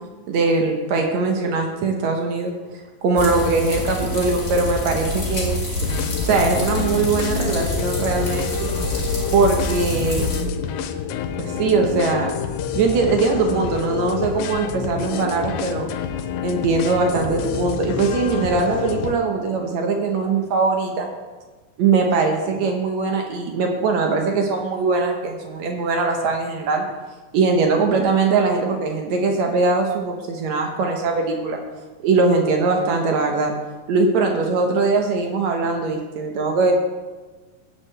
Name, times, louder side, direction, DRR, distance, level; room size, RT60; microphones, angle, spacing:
voice 1, 0.3-2.5 3.0-5.6 6.2-8.7 9.3-10.3 11.4-12.4 12.7-15.9 16.4-21.1 21.8-26.9 27.3-31.6 32.0-33.5 33.9-36.7, right 4 dB, 70° right, 2 dB, 1.8 m, -21 dB
sound 1, 3.2-10.4, left 1 dB, 35° left, 1.0 m, -27 dB
sound 2, 5.8-19.2, left 8 dB, 85° left, 2.3 m, -28 dB
16.5 x 6.5 x 3.3 m, 1.3 s
omnidirectional pair, 4.1 m